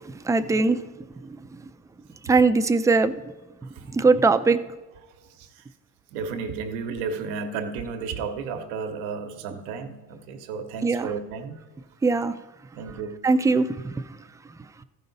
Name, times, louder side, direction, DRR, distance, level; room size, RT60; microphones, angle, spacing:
voice 1, 0.3-0.8 2.3-3.1 3.9-4.6 10.8-11.1 12.0-12.3 13.2-13.7, right 3 dB, 10° right, 10 dB, 0.3 m, -20 dB
voice 2, 3.6-4.0 5.4-5.6 6.1-11.6 12.8-13.2, right 5 dB, 90° right, 6 dB, 1.1 m, -33 dB
14.5 x 5.5 x 3.9 m, 1.2 s
supercardioid pair, 75°, 48 cm